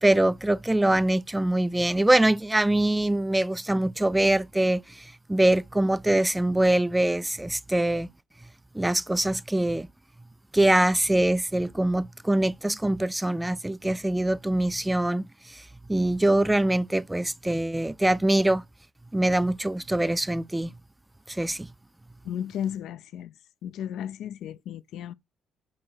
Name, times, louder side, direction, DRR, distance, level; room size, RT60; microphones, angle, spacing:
voice 1, 0.0-8.1 8.7-9.9 10.5-18.6 19.1-20.7 21.3-21.7, right 1 dB, 10° right, 0.4 m, -24 dB
voice 2, 22.2-23.3 23.6-25.1, left 9 dB, 75° left, 0.4 m, -34 dB
4.8 x 4.8 x 4.3 m
supercardioid pair, 70°, 0 cm